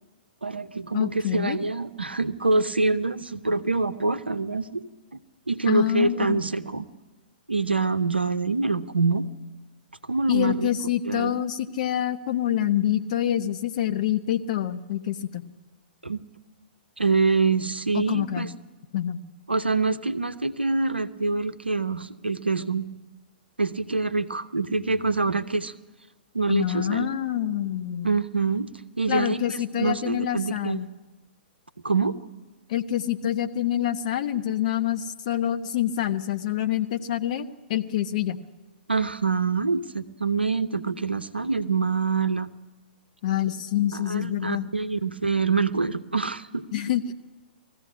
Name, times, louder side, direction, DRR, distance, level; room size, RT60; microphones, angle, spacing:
voice 1, 0.4-4.8 5.1-5.2 5.5-6.9 7.5-9.3 10.1-10.7 11.0-11.3 16.0-16.2 17.0-18.5 19.5-22.8 23.6-25.7 26.3-27.1 28.0-28.7 29.0-30.9 31.8-32.2 38.9-42.5 43.9-46.6, right 4 dB, 80° right, 11 dB, 0.9 m, -25 dB
voice 2, 0.9-1.6 5.7-6.4 10.3-15.4 17.9-18.5 18.9-19.2 26.5-28.1 29.1-30.9 32.7-38.4 43.2-44.7 46.7-47.1, left 11 dB, 45° left, 8 dB, 1.0 m, -26 dB
20.0 x 15.0 x 8.7 m, 1.2 s
figure-of-eight pair, 115°, 6 cm